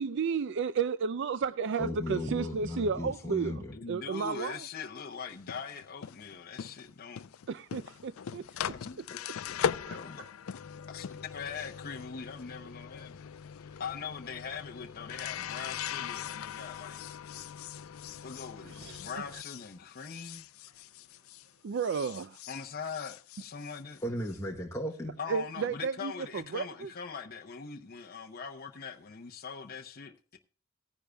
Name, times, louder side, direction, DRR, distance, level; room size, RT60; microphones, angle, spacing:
voice 1, 0.0-4.7 7.5-8.8 9.9-10.3 18.6-19.0 19.3-19.4 21.6-22.4 25.3-26.9, right 5 dB, 60° right, 0.4 m, -33 dB
voice 2, 1.8-3.7 18.1-18.2 18.8-18.9 24.0-25.1, left 1 dB, 15° left, 1.0 m, -36 dB
voice 3, 3.7-7.2 8.6-10.2 10.9-11.0 11.3-13.2 13.6-17.0 18.2-20.5 22.5-24.0 25.2-30.4, left 6 dB, 45° left, 0.7 m, -42 dB
sound 1, 5.3-21.5 21.8-24.4, left 8 dB, 80° left, 0.4 m, -40 dB
18.0 x 10.0 x 2.2 m
head